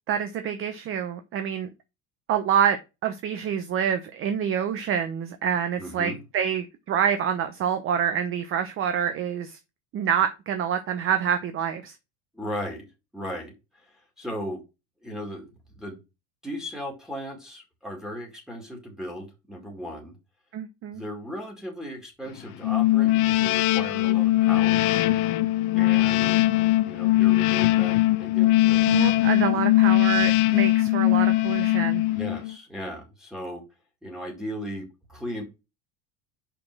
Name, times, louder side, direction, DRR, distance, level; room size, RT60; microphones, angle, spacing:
voice 1, 0.1-1.7 2.3-9.6 9.9-11.9 20.5-21.0 28.9-32.0, right 8 dB, 35° right, 0.8 m, -27 dB
voice 2, 5.8-6.2 12.3-12.9 13.1-13.5 13.8-14.6 15.0-15.5 15.8-16.0 16.4-20.1 20.9-24.8 25.8-26.5 26.9-28.9 29.5-29.6 32.1-33.6 34.0-35.4, equal, ahead, 2.0 m, -36 dB
sound 1, 22.6-32.5, left 16 dB, 60° left, 0.8 m, -21 dB
5.6 x 4.3 x 5.9 m
cardioid pair, 140°, 36 cm